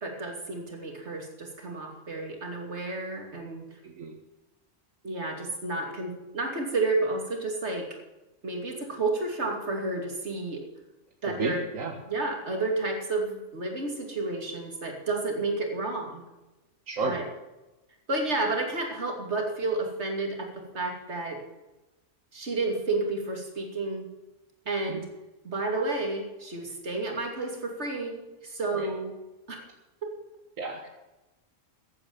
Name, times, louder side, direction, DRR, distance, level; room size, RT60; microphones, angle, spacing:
voice 1, 0.0-3.8 5.0-7.9 8.4-10.6 11.2-11.6 12.1-16.2 17.0-17.2 18.1-21.4 22.3-24.1 24.7-25.1 25.4-29.1 29.5-29.6 30.0-30.1, right 2 dB, 60° right, 2 dB, 3.1 m, -31 dB
voice 2, 3.8-4.2 11.4-12.0 16.9-17.2 24.9-25.0 28.7-28.9 30.6-30.8, right 4 dB, 90° right, 3 dB, 1.8 m, -32 dB
14.5 x 8.8 x 7.1 m, 1.0 s
omnidirectional pair, 1.3 m